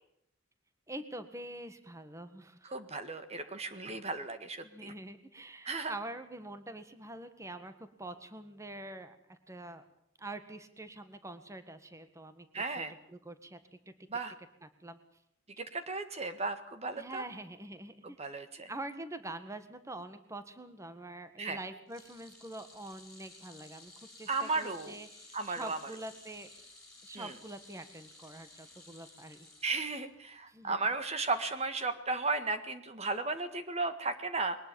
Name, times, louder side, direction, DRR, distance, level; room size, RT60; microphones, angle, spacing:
voice 1, 0.9-2.7 4.6-7.7 8.0-9.8 10.2-13.9 14.6-15.0 17.0-18.2 18.7-26.5 27.0-29.5 30.5-30.8, right 1 dB, 15° right, 10 dB, 1.7 m, -45 dB
voice 2, 2.6-4.9 5.6-5.9 12.5-12.9 14.1-14.3 15.6-17.2 18.2-18.7 21.4-21.6 24.3-24.9 25.3-25.8 27.1-27.3 29.6-34.6, right 3 dB, 30° right, 9 dB, 1.7 m, -35 dB
sound 1, 21.9-30.4 30.7-31.0 32.1-32.2, left 2 dB, 5° left, 6.8 m, -55 dB
22.5 x 19.5 x 7.1 m, 0.74 s
head